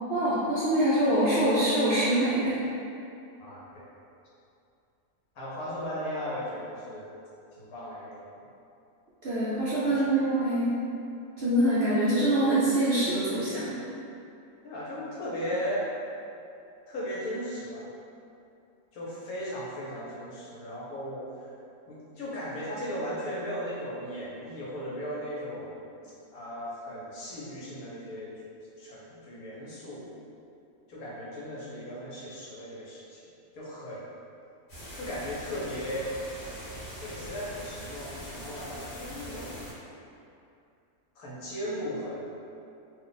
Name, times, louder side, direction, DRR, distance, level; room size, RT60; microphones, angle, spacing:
voice 1, 0.0-2.6 9.2-10.7 11.4-13.8, right 1 dB, 60° right, -10 dB, 0.6 m, -25 dB
voice 2, 3.4-3.9 5.3-7.1 7.5-8.3 9.9-10.1 14.6-15.9 16.9-17.9 18.9-21.5 21.9-28.3 28.8-30.0 30.9-33.2 33.5-34.0 34.9-36.1 37.0-39.6 41.1-42.2, equal, 70° left, -7 dB, 1.2 m, -37 dB
sound 1, 34.7-39.7, equal, 45° left, 1.2 m, -42 dB
2.6 x 2.3 x 3.8 m, 2.6 s
omnidirectional pair, 1.6 m